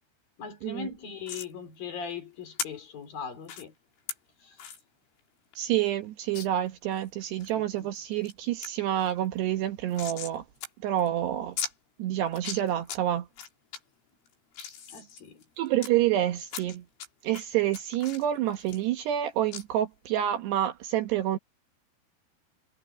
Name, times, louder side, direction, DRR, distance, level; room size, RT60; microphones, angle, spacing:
voice 1, 0.4-3.7 4.4-4.6 7.5-7.9 14.9-15.4, left 6 dB, 50° left, 5.5 m, -40 dB
sound 1, 1.3-1.5 2.6-2.7 3.5-3.6 4.1-4.2 4.6-4.8 5.2-5.3 5.5-5.6 6.4-6.5 7.0-7.5 8.0-8.3 8.6-8.7 9.0-10.4 10.6-10.7 11.0-11.1 11.6-11.7 12.3-13.0 13.4-13.8 14.3-15.9 16.5-17.1 17.3-19.2 19.5-19.6, left 8 dB, 75° left, 6.3 m, -37 dB
voice 2, 5.6-10.4 10.8-11.6 12.0-13.3 15.6-16.8 17.2-21.4, right 12 dB, 70° right, 3.0 m, -28 dB
omnidirectional pair, 5.6 m